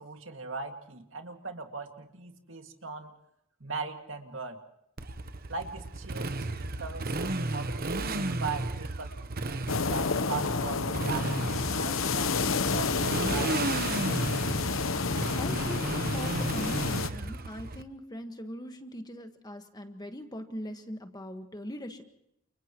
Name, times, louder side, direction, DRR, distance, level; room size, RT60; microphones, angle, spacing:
voice 1, 0.0-3.1 3.6-4.6 5.5-12.4 12.7-13.6, right 4 dB, 70° right, 4 dB, 2.2 m, -39 dB
Motorcycle, 5.0-17.8, right 2 dB, 50° right, 1.0 m, -34 dB
sound 1, 9.7-17.1, left 4 dB, 80° left, 1.0 m, -30 dB
voice 2, 15.4-22.0, equal, 20° left, 6 dB, 1.6 m, -41 dB
30.0 x 29.0 x 3.1 m, 0.78 s
head